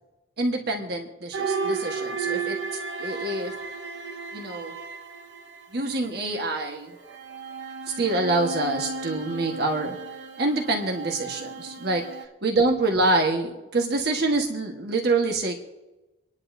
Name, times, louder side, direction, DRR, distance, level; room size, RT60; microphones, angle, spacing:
voice 1, 0.4-2.6 3.0-3.5 4.3-4.8 5.7-6.9 8.0-10.0 10.4-12.1 12.4-15.6, right 2 dB, 60° right, 2 dB, 1.4 m, -26 dB
sound 1, 1.3-6.1 7.0-12.2, right 4 dB, 90° right, 1.0 m, -34 dB
26.5 x 10.5 x 2.7 m, 1.1 s
head